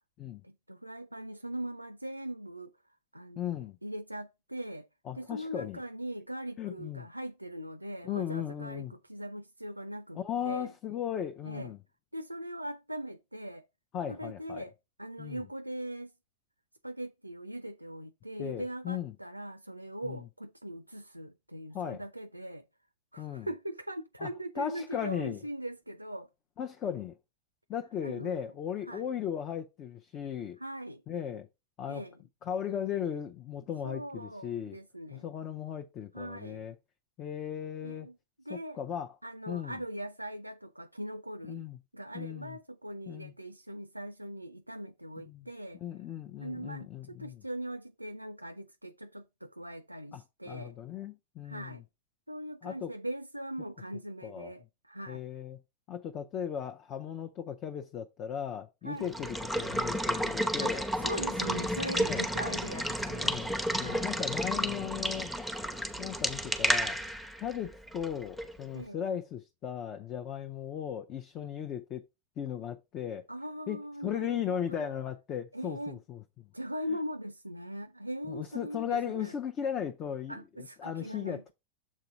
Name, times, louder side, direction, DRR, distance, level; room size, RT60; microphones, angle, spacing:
voice 1, 0.4-2.7 3.1-4.9 5.1-10.2 10.4-10.7 11.4-11.7 12.1-13.7 14.1-14.7 15.0-16.1 16.8-22.6 23.1-26.3 28.0-28.4 28.9-29.1 30.6-31.0 31.9-32.1 33.8-35.2 36.1-36.7 37.8-38.2 38.5-38.8 39.2-41.7 41.9-45.8 46.4-50.8 51.4-51.8 52.3-55.2 58.8-59.1 60.6-60.7 61.0-64.1 68.7-69.0 73.3-74.9 75.5-76.0 76.5-79.3 80.3-81.5, equal, 85° right, 0.4 m, -40 dB
voice 2, 3.4-3.8 5.0-5.8 6.6-7.1 8.0-8.9 10.1-11.8 13.9-14.7 15.2-15.5 18.4-19.2 20.0-20.3 21.7-22.0 23.2-23.5 24.2-25.5 26.6-27.2 27.7-30.6 31.1-31.5 31.8-32.0 32.4-34.8 35.1-36.8 37.2-38.1 38.5-39.2 39.5-39.8 41.5-41.8 42.1-42.6 43.1-43.3 45.2-45.5 45.8-47.4 50.1-51.8 52.6-52.9 54.2-54.5 55.1-55.6 55.9-60.9 62.0-62.2 63.2-65.3 66.0-67.0 67.4-72.0 72.4-73.3 73.7-76.5 78.3-81.5, left 9 dB, 30° left, 0.6 m, -37 dB
Water / Water tap faucet / Liquid, 59.0-68.6, equal, ahead, 0.8 m, -32 dB
7.4 x 3.9 x 4.6 m
figure-of-eight pair, 90°, 0 cm